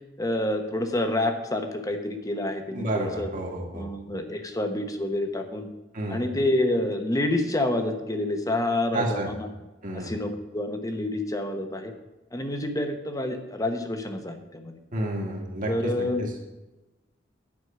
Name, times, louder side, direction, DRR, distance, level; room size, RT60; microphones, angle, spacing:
voice 1, 0.2-3.3 3.7-5.7 6.1-9.5 9.9-11.9 12.3-14.8 15.7-16.3, left 1 dB, 20° left, 6 dB, 1.0 m, -28 dB
voice 2, 2.7-3.9 5.9-6.2 8.9-9.3 9.8-10.1 14.9-16.3, right 1 dB, 45° right, 0 dB, 2.0 m, -30 dB
9.6 x 6.4 x 7.5 m, 1.1 s
head